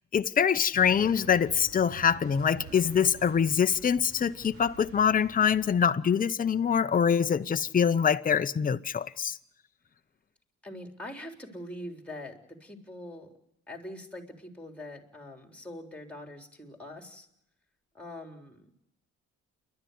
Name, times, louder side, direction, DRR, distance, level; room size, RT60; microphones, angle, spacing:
voice 1, 0.1-9.4, left 7 dB, 30° left, 0.7 m, -24 dB
sound 1, 0.8-5.9, right 5 dB, 50° right, 2.8 m, -49 dB
voice 2, 10.6-13.3 13.7-17.3 17.9-18.8, left 1 dB, 5° left, 3.9 m, -43 dB
28.5 x 12.0 x 9.4 m
cardioid pair, 90°, 30 cm